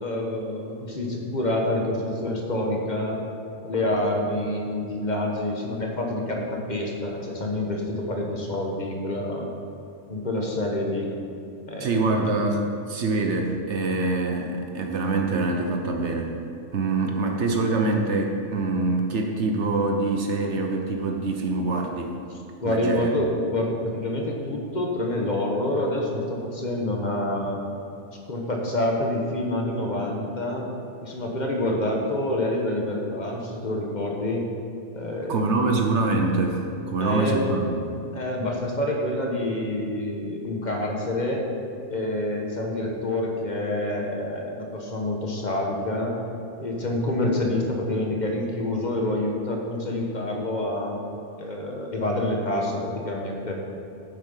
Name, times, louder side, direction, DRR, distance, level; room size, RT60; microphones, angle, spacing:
voice 1, 0.0-3.2 3.6-9.5 10.1-11.1 11.7-12.4 22.6-27.6 28.3-30.7 31.0-34.5 34.9-35.9 37.0-37.6 38.1-41.4 41.9-46.2 46.6-51.0 51.4-53.5, left 1 dB, 40° left, 0 dB, 1.4 m, -27 dB
voice 2, 11.8-16.3 16.7-22.2 22.6-23.1 35.3-36.6 36.9-37.8, right 3 dB, 70° right, 2 dB, 1.2 m, -25 dB
9.1 x 8.3 x 5.6 m, 2.5 s
omnidirectional pair, 1.2 m